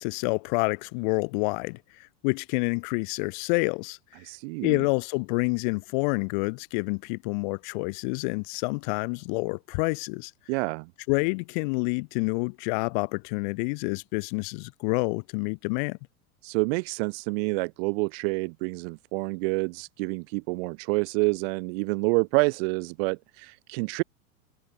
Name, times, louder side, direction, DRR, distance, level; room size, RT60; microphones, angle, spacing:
voice 1, 0.0-1.8 2.2-4.0 4.6-10.3 11.1-16.0, left 32 dB, 35° left, 0.4 m, -28 dB
voice 2, 4.2-4.8 10.5-10.9 16.4-24.0, right 29 dB, 45° right, 0.7 m, -28 dB
figure-of-eight pair, 90°, 44 cm